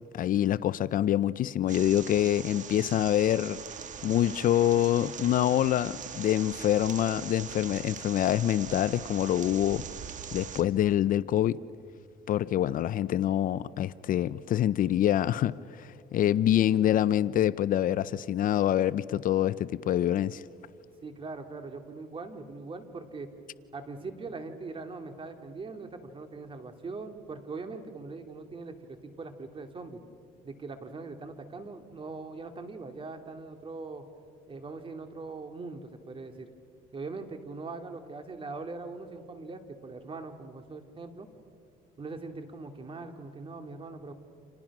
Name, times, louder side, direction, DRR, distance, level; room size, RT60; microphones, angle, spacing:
voice 1, 0.1-3.6 4.0-9.8 10.3-11.6 12.3-20.4, left 11 dB, 55° left, 0.5 m, -26 dB
sound 1, 1.7-10.6, right 7 dB, 50° right, 1.5 m, -41 dB
voice 2, 21.0-23.3 23.7-30.0 30.4-34.1 34.5-36.5 36.9-41.3 42.0-44.1, right 3 dB, 30° right, 2.4 m, -41 dB
30.0 x 27.0 x 6.0 m
cardioid pair, 110°, 17 cm